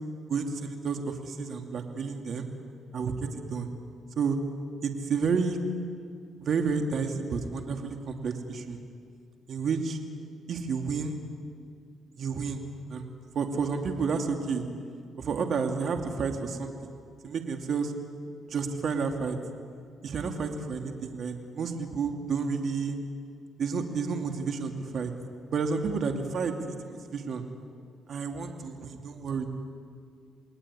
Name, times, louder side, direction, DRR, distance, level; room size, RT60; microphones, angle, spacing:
voice 1, 0.3-2.5 2.9-3.7 4.2-4.4 4.8-5.6 6.4-8.8 9.5-10.0 10.5-11.2 12.2-12.6 12.9-14.6 15.2-16.9 17.2-17.9 18.4-19.4 20.0-23.0 23.6-25.1 25.5-27.4 28.1-29.4, right 5 dB, 60° right, 4 dB, 2.6 m, -30 dB
29.0 x 20.5 x 9.9 m, 2.3 s
cardioid pair, 90°, 0 cm